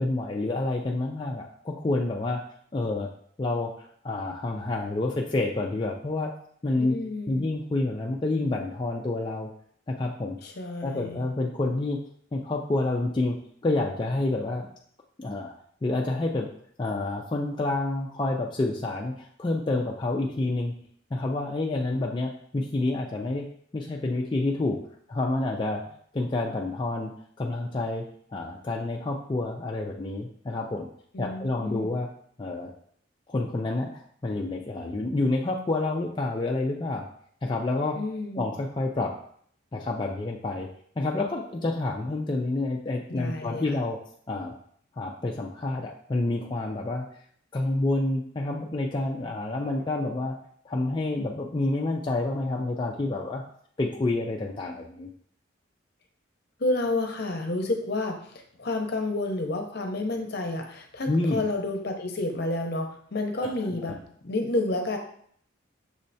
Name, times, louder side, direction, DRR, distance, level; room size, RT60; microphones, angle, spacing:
voice 1, 0.0-2.4 2.7-3.1 3.4-6.3 6.6-7.0 7.3-9.5 9.9-10.4 10.8-12.0 12.3-13.4 13.6-14.7 15.2-15.5 15.8-16.5 16.8-20.7 21.1-23.5 23.7-24.8 25.1-25.8 26.1-27.1 27.4-28.1 28.3-30.9 31.2-32.1 32.4-32.7 33.3-37.1 37.4-38.0 38.4-39.1 39.7-40.7 41.0-44.0 44.3-44.5 45.0-47.1 47.5-50.3 50.7-53.4 53.8-55.1 61.1-61.4 63.4-63.9, left 2 dB, 25° left, -1 dB, 0.3 m, -28 dB
voice 2, 6.8-7.5 10.4-11.3 31.1-31.9 37.9-38.5 43.1-43.7 56.6-65.0, left 2 dB, 55° left, 3 dB, 0.7 m, -30 dB
6.2 x 3.2 x 2.7 m, 0.62 s
head